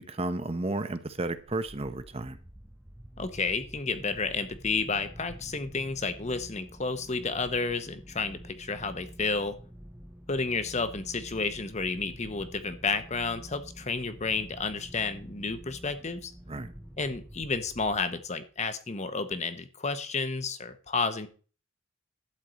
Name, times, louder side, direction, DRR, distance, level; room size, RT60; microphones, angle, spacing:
voice 1, 0.0-2.4 16.5-16.7, right 2 dB, 30° right, 0.9 m, -33 dB
sound 1, 1.4-18.5, equal, 5° right, 0.6 m, -48 dB
voice 2, 3.2-9.6 10.3-16.3 17.0-21.3, left 4 dB, 35° left, 1.0 m, -31 dB
12.0 x 4.6 x 8.1 m
head